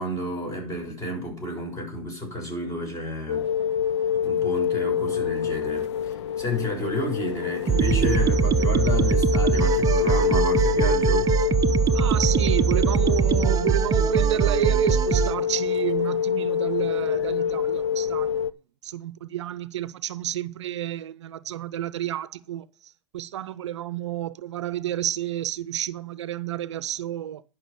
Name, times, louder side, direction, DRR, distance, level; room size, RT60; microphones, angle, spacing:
voice 1, 0.0-3.5 4.2-11.3, left 1 dB, 20° left, 6.9 m, -31 dB
sound 1, 3.3-18.5, left 8 dB, 70° left, 0.6 m, -27 dB
sound 2, 7.7-15.3, right 7 dB, 25° right, 0.7 m, -22 dB
voice 2, 11.9-18.5 18.8-27.4, right 11 dB, 75° right, 0.7 m, -30 dB
11.0 x 6.0 x 6.8 m
hypercardioid pair, 100°, 15 cm